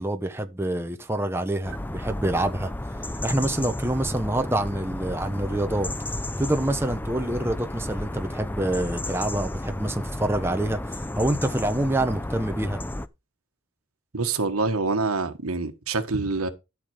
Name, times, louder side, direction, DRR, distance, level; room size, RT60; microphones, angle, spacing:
voice 1, 0.0-2.7 3.2-5.9 6.4-12.8, right 1 dB, 10° right, 0.8 m, -26 dB
sound 1, 1.6-13.1, left 1 dB, 10° left, 0.5 m, -33 dB
voice 2, 14.1-16.5, right 3 dB, 85° right, 1.6 m, -26 dB
12.5 x 5.9 x 4.9 m
head